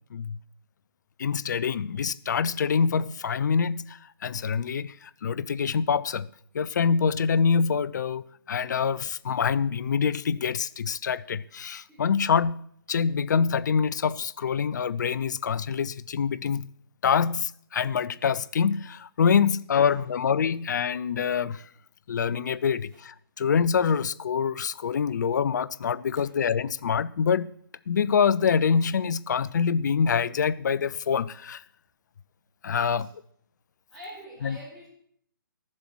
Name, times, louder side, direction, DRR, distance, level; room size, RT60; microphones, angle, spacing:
voice 1, 1.2-6.3 6.5-12.6 12.9-16.7 17.0-21.6 22.1-27.5 27.9-31.6 32.6-33.1 34.4-34.6, left 6 dB, 55° left, 0.5 m, -25 dB
voice 2, 33.9-34.9, equal, ahead, 4.4 m, -45 dB
13.0 x 7.3 x 6.2 m
figure-of-eight pair, 145°, 12 cm